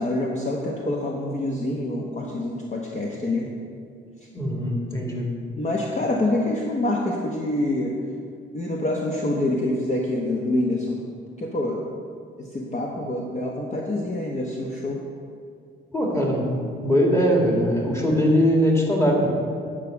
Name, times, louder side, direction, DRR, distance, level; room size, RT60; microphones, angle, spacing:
voice 1, 0.0-3.5 5.6-8.0 8.5-11.0 11.4-11.8 12.4-15.0, left 1 dB, 35° left, -1 dB, 1.1 m, -26 dB
voice 2, 4.3-5.3 15.9-19.3, equal, 15° left, -1 dB, 2.3 m, -21 dB
9.2 x 5.0 x 6.9 m, 2.3 s
cardioid pair, 90°, 20 cm